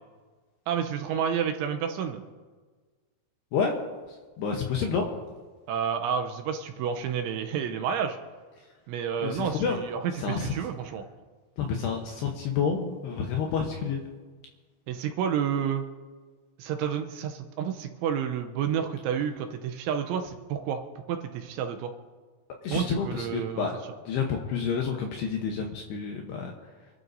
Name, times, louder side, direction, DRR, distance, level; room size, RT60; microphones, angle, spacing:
voice 1, 0.7-2.2 5.7-8.2 8.9-11.0 14.9-15.9 16.6-21.9 22.7-23.7, right 8 dB, 80° right, 6 dB, 2.9 m, -30 dB
voice 2, 4.4-5.1 9.2-9.8 10.2-10.5 11.6-14.0 22.6-23.7 24.1-26.5, left 6 dB, 75° left, 2 dB, 2.5 m, -29 dB
27.5 x 12.0 x 2.7 m, 1.4 s
omnidirectional pair, 5.9 m